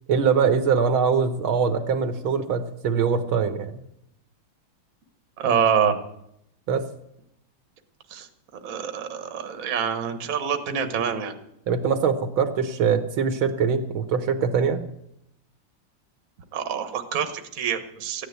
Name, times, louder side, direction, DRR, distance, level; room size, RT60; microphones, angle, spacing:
voice 1, 0.1-3.8 6.7-6.8 11.7-14.8, right 6 dB, 75° right, 9 dB, 1.8 m, -23 dB
voice 2, 5.4-6.0 8.1-8.3 8.6-11.4 16.5-18.2, right 7 dB, 45° right, 7 dB, 1.5 m, -26 dB
14.5 x 9.9 x 8.0 m, 0.77 s
omnidirectional pair, 2.3 m